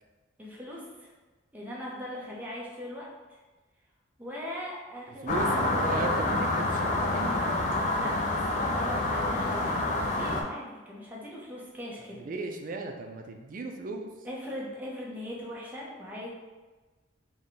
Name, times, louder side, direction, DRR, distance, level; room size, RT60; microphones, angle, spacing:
voice 1, 0.4-1.1 1.5-3.4 4.2-6.0 7.9-12.2 14.2-16.3, left 1 dB, 10° right, -5 dB, 0.6 m, -40 dB
voice 2, 5.2-7.3 12.2-14.1, right 3 dB, 45° right, 4 dB, 0.3 m, -36 dB
sound 1, 5.3-10.4, left 2 dB, 35° left, 0.4 m, -27 dB
3.5 x 2.2 x 3.9 m, 1.3 s
head